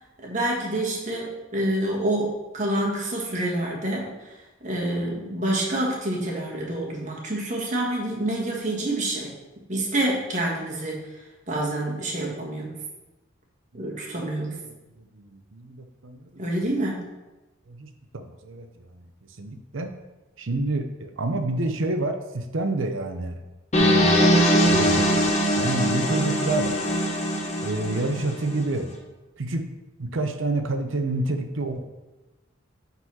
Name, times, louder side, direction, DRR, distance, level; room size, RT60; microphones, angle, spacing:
voice 1, 0.2-4.1 4.6-9.3 9.7-11.0 11.5-12.8 13.7-14.6 16.4-17.1, right 1 dB, 40° right, -2 dB, 1.6 m, -27 dB
voice 2, 15.0-16.4 17.7-19.0 19.4-19.9 20.4-23.4 23.8-24.3 24.7-25.1 25.6-26.7 27.6-28.9 29.4-29.7 30.0-31.8, right 2 dB, 80° right, 7 dB, 0.8 m, -28 dB
sound 1, 23.7-28.6, equal, 35° left, 1.0 m, -21 dB
9.2 x 4.1 x 4.3 m, 1.1 s
head